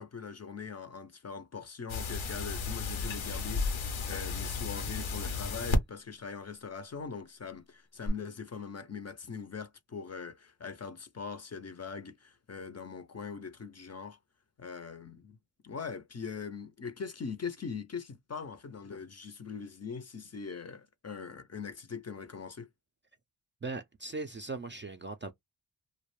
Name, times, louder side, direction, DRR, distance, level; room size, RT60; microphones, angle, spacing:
voice 1, 0.0-14.2 14.6-15.4 15.6-22.7, left 5 dB, 35° left, 0.5 m, -42 dB
sound 1, 1.9-5.8 8.1-8.2, left 3 dB, 85° left, 0.7 m, -33 dB
voice 2, 23.6-25.3, right 3 dB, 25° right, 0.4 m, -39 dB
2.3 x 2.1 x 3.1 m
cardioid pair, 45°, 46 cm